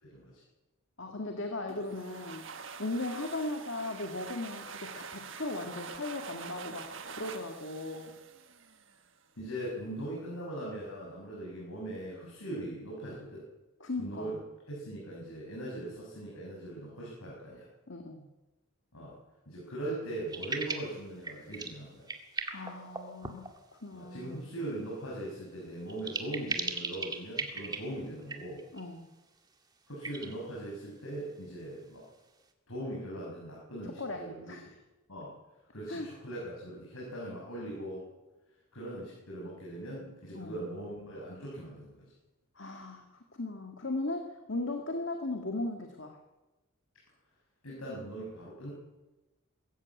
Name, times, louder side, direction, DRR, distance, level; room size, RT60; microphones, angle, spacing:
voice 1, 0.0-0.4 9.4-13.5 14.0-17.7 18.9-19.2 19.5-22.1 23.9-28.7 29.9-32.1 32.7-34.5 35.1-35.3 35.7-38.1 38.7-42.1 47.6-48.7, right 1 dB, 75° left, -4 dB, 6.4 m, -40 dB
voice 2, 1.0-2.5 2.8-8.1 13.8-14.3 17.9-18.2 22.5-23.4 23.8-24.4 28.7-29.1 34.0-34.7 35.9-36.1 40.3-40.6 42.6-46.2, left 2 dB, 55° left, 3 dB, 1.9 m, -37 dB
sound 1, 1.7-9.2, right 5 dB, 60° right, 1.5 m, -46 dB
sound 2, 20.3-21.0 21.2-21.8 22.1-23.6 25.9-27.8 28.2-28.8 30.0-30.3, right 4 dB, 20° right, 1.9 m, -37 dB
22.0 x 14.5 x 8.4 m, 1.1 s
head